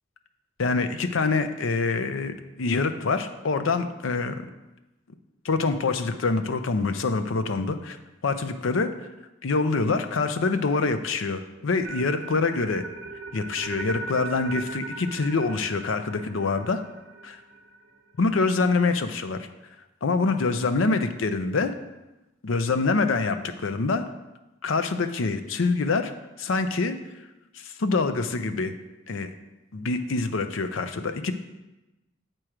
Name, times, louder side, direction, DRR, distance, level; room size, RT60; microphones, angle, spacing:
voice 1, 0.6-4.3 5.4-8.0 8.2-8.9 9.4-12.8 13.3-16.8 17.2-17.4 18.2-19.5 20.0-21.7 22.4-24.0 24.6-26.1 26.4-27.0 27.5-28.7 29.1-29.3 29.7-31.3, left 3 dB, 75° left, 9 dB, 0.6 m, -25 dB
sound 1, 11.8-17.9, right 3 dB, 65° right, 1.0 m, -39 dB
7.6 x 4.5 x 4.9 m, 1.0 s
head